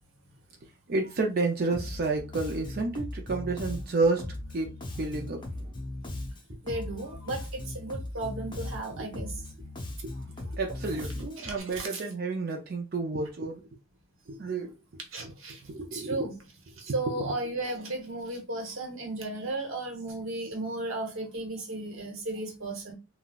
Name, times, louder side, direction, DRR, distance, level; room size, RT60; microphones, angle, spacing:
voice 1, 0.9-4.3 4.5-4.7 5.0-5.7 8.9-9.2 10.0-10.1 10.5-13.6 14.3-14.7 15.7-16.3 17.2-17.3, right 3 dB, 50° right, 0.5 m, -30 dB
Bass guitar, 1.7-11.6, left 1 dB, 25° left, 0.7 m, -38 dB
voice 2, 6.6-9.4 10.4-10.5 11.4-12.0 15.1-15.6 15.9-16.3 16.8-22.9, right 2 dB, 90° right, 1.0 m, -35 dB
3.7 x 2.2 x 2.3 m
head